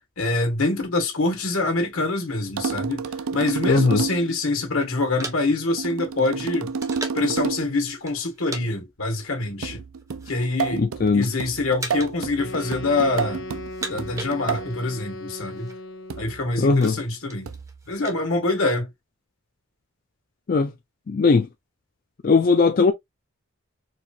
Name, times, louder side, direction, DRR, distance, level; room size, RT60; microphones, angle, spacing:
voice 1, 0.2-6.7 7.1-9.8 10.3-10.9 11.1-13.4 13.9-15.7 16.2-17.5 17.9-18.9, left 2 dB, 80° left, 1.5 m, -25 dB
sound 1, 2.6-4.4 5.8-7.8 9.6-14.8 16.1-16.5 17.5-17.8, right 5 dB, 80° right, 0.4 m, -30 dB
voice 2, 3.7-4.0 10.8-11.3 16.6-16.9 20.5-20.7 21.1-21.5 22.2-22.9, left 4 dB, 40° left, 0.3 m, -18 dB
sound 2, 4.8-7.4 8.0-8.7 8.9-9.1 9.8-10.6 10.9-11.3 11.8-12.3 12.5-13.2 13.6-14.8 15.1-15.2 15.4-15.8 16.3-18.2, right 2 dB, 15° right, 0.6 m, -38 dB
Wind instrument woodwind instrument, 12.3-16.4, left 2 dB, 60° left, 0.8 m, -37 dB
4.5 x 2.4 x 2.6 m
head